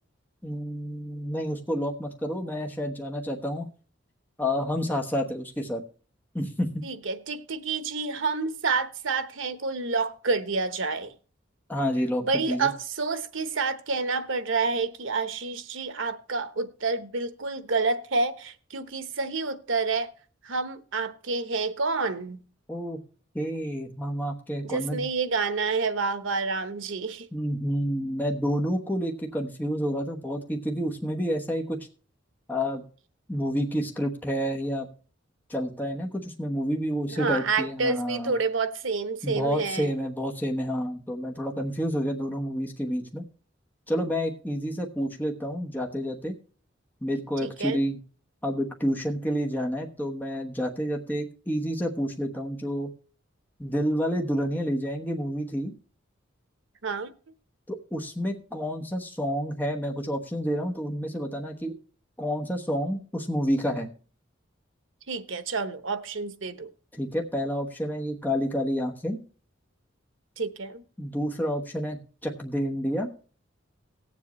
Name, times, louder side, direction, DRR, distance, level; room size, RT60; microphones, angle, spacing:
voice 1, 0.4-3.7 4.4-5.8 6.3-6.9 11.7-12.7 22.7-23.0 23.3-25.1 27.3-31.8 32.5-32.8 33.3-34.9 35.5-38.3 39.2-43.3 43.9-46.3 47.0-48.0 48.4-52.9 53.6-55.7 57.7-61.8 62.2-63.9 66.9-69.2 71.0-73.1, equal, 10° left, 1.1 m, -29 dB
voice 2, 6.8-11.1 12.3-20.1 20.4-22.4 24.6-27.3 37.1-39.9 47.4-47.8 56.8-57.1 65.1-66.7 70.4-70.8, right 4 dB, 75° right, 1.0 m, -28 dB
18.0 x 7.4 x 3.1 m
head